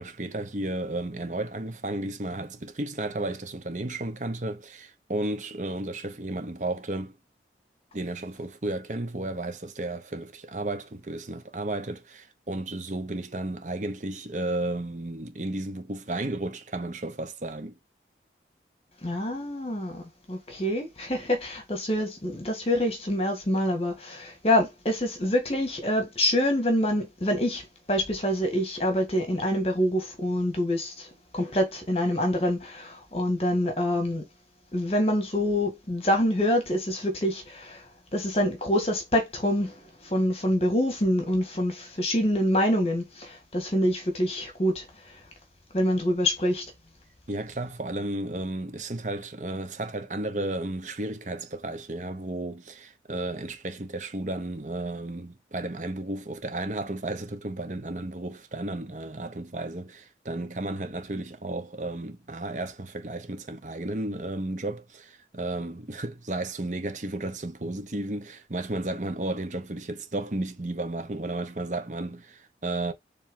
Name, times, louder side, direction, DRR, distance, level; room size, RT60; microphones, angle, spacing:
voice 1, 0.0-7.2 7.9-17.8 47.3-72.9, right 2 dB, 45° right, 1.0 m, -33 dB
voice 2, 19.0-20.0 20.3-27.6 27.9-31.1 31.3-34.2 34.7-37.8 38.1-39.7 40.0-44.9 45.7-46.6, left 1 dB, 35° left, 1.8 m, -26 dB
7.3 x 3.4 x 3.7 m
head